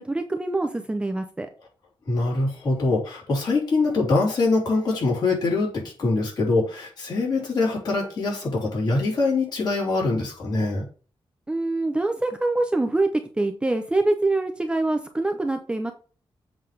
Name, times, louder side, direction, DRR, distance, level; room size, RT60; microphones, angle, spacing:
voice 1, 0.0-1.5 11.5-13.1 13.4-15.9, right 2 dB, 10° right, 6 dB, 0.7 m, -24 dB
voice 2, 2.1-10.9, left 3 dB, 50° left, -3 dB, 4.3 m, -23 dB
7.8 x 3.6 x 6.3 m, 0.38 s
wide cardioid pair, 170°, 9 cm